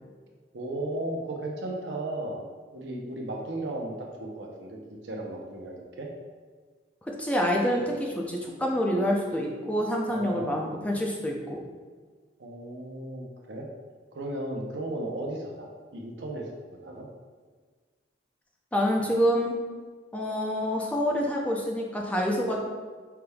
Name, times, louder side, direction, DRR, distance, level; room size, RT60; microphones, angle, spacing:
voice 1, 0.5-2.4 2.7-4.8 5.0-6.1 10.1-10.7 12.4-13.7 14.1-17.1, right 1 dB, 85° right, 0 dB, 0.7 m, -35 dB
voice 2, 7.2-11.6 18.7-19.6 20.1-22.6, equal, 10° left, -1 dB, 0.5 m, -27 dB
5.7 x 3.4 x 2.3 m, 1.5 s
head